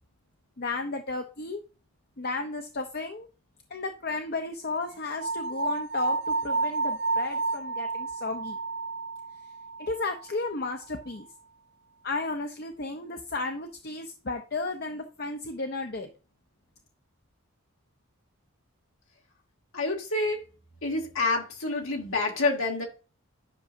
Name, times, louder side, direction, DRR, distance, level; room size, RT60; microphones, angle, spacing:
voice 1, 0.6-1.6 2.2-3.3 3.7-8.6 9.8-11.3 12.0-16.1, left 3 dB, 45° left, 0.7 m, -33 dB
sound 1, 5.2-10.3, right 3 dB, 45° right, 0.5 m, -31 dB
voice 2, 19.7-20.4 20.8-22.8, left 3 dB, 65° left, 2.4 m, -28 dB
10.5 x 6.1 x 2.6 m
head